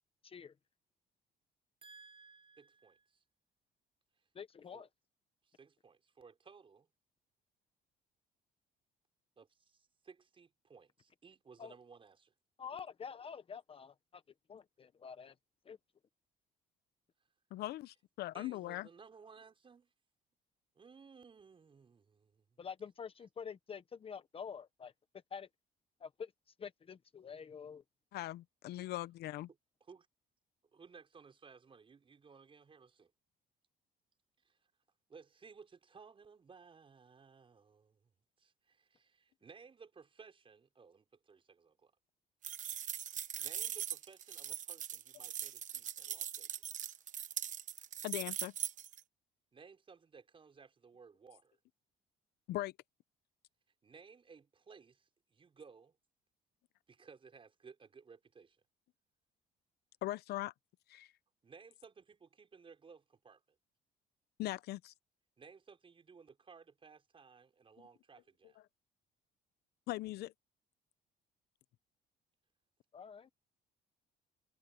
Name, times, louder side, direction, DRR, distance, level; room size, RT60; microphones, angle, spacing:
voice 1, 0.2-0.5 4.3-4.9 11.6-11.7 12.6-14.2 14.5-15.3 15.6-15.8 22.6-24.9 25.3-25.5 26.0-26.3 26.6-27.8 72.9-73.3, left 6 dB, 35° left, 0.9 m, -47 dB
voice 2, 1.8-3.2 4.7-4.9 5.4-6.9 9.4-12.3 18.3-19.9 20.8-22.6 29.9-30.1 30.7-33.1 34.4-34.6 35.1-38.0 38.4-41.9 43.4-46.8 49.5-51.6 53.8-56.0 56.9-58.6 61.4-63.4 65.4-68.6, right 5 dB, 30° right, 5.6 m, -58 dB
voice 3, 17.5-18.9 28.1-29.5 48.0-48.5 52.5-52.7 60.0-60.5 60.9-61.1 64.4-64.9 69.9-70.3, left 16 dB, 70° left, 0.7 m, -40 dB
sound 1, 42.4-49.0, right 9 dB, 50° right, 1.1 m, -41 dB
cardioid pair, 110°, 17 cm